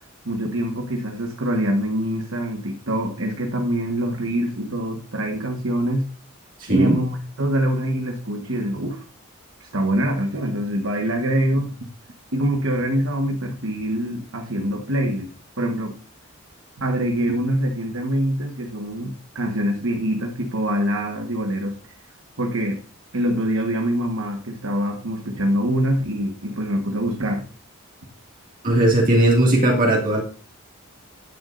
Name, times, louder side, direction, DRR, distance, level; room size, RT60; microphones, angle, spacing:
voice 1, 0.2-6.1 6.7-9.0 9.6-11.8 12.3-15.3 15.6-16.0 16.8-21.8 22.4-22.8 23.1-27.5, right 1 dB, 65° right, 2 dB, 1.4 m, -24 dB
voice 2, 6.6-7.0 28.6-30.2, right 1 dB, 40° right, -2 dB, 2.3 m, -17 dB
13.5 x 9.7 x 2.6 m, 0.39 s
head